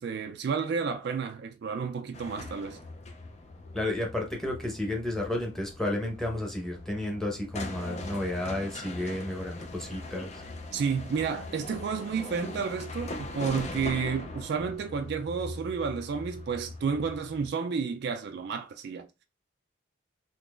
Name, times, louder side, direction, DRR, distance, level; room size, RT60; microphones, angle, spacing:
voice 1, 0.0-2.8 10.7-19.1, right 6 dB, 55° right, 0.3 m, -31 dB
sound 1, 2.1-17.5, left 2 dB, 35° left, 0.4 m, -41 dB
voice 2, 3.7-10.4, left 1 dB, ahead, 0.8 m, -32 dB
3.7 x 2.9 x 2.4 m
head